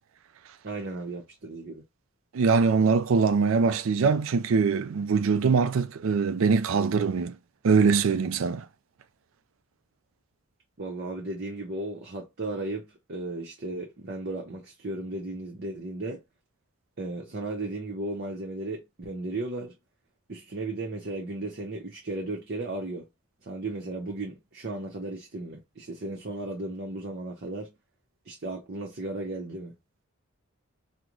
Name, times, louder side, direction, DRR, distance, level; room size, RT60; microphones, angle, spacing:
voice 1, 0.6-1.8 10.8-16.2 17.0-19.8 20.3-23.0 23.4-27.7 28.3-29.8, right 2 dB, 50° right, 0.8 m, -35 dB
voice 2, 2.3-7.3 7.6-8.6, right 5 dB, 70° right, 0.4 m, -23 dB
3.8 x 2.1 x 3.0 m
head